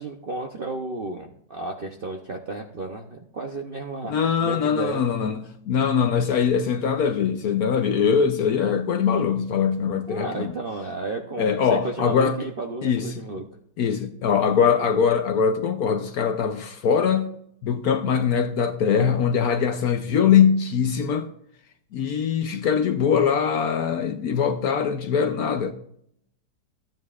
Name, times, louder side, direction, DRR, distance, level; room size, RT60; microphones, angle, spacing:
voice 1, 0.0-5.0 10.1-13.5, right 3 dB, 55° right, 0.6 m, -33 dB
voice 2, 4.0-5.4 5.7-10.5 11.4-12.4 12.8-13.3 13.8-17.3 17.6-21.3 21.9-25.7, left 7 dB, 65° left, 1.0 m, -22 dB
14.5 x 9.3 x 2.4 m
omnidirectional pair, 2.0 m